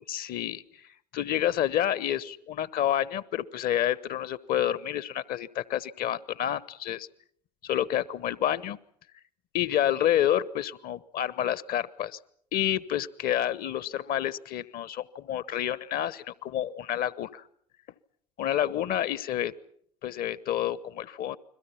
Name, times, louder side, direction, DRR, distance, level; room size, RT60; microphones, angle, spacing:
voice 1, 0.1-0.6 1.1-7.1 7.6-8.8 9.5-12.2 12.5-17.4 18.4-19.5 20.0-21.4, left 11 dB, 45° left, 19 dB, 1.1 m, -29 dB
29.5 x 22.0 x 5.9 m, 0.64 s
figure-of-eight pair, 70°, 21 cm